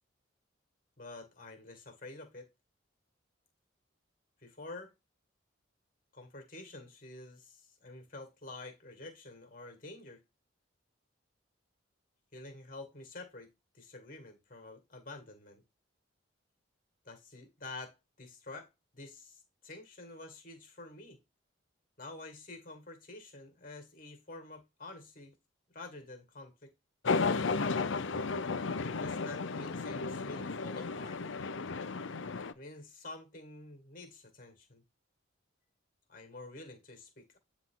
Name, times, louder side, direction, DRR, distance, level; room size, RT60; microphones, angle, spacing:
voice 1, 1.0-2.5 4.4-4.9 6.1-10.2 12.3-13.5 13.7-15.6 17.0-21.2 22.0-25.3 25.7-26.7 28.8-31.2 32.4-34.8 36.1-37.4, left 2 dB, 45° left, 2.2 m, -48 dB
sound 1, 27.1-32.5, left 4 dB, 70° left, 0.6 m, -33 dB
9.5 x 3.7 x 3.8 m
head